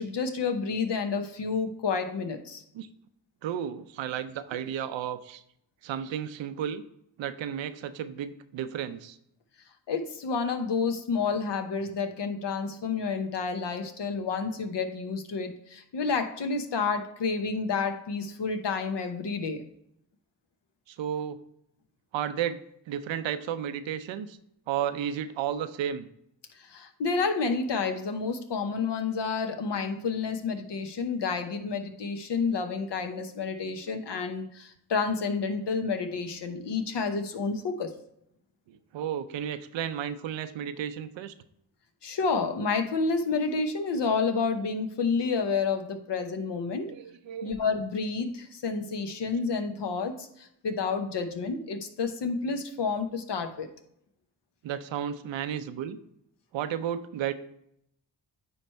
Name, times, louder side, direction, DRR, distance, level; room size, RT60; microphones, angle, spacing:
voice 1, 0.0-2.6 9.9-19.6 26.5-37.9 42.0-46.9 47.4-53.7, left 4 dB, 70° left, 7 dB, 1.0 m, -30 dB
voice 2, 3.4-5.4 5.8-6.8 7.2-9.2 20.9-21.4 22.1-22.6 22.9-24.4 24.7-26.1 38.7-41.3 46.9-47.5 54.6-56.0 56.5-57.3, right 9 dB, 85° right, 11 dB, 0.6 m, -33 dB
9.4 x 3.2 x 4.4 m, 0.74 s
cardioid pair, 50°, 44 cm